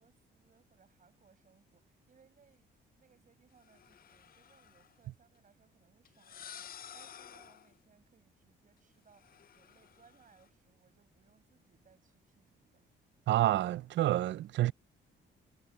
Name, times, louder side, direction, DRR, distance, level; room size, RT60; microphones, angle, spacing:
voice 1, 0.0-2.7 2.9-12.9, right 6 dB, 40° right, 7.5 m, -67 dB
sound 1, 3.6-4.9 6.1-7.8 9.1-10.5, left 9 dB, 50° left, 0.6 m, -52 dB
voice 2, 13.3-14.7, right 14 dB, 65° right, 0.5 m, -28 dB
cardioid pair, 90°, 20 cm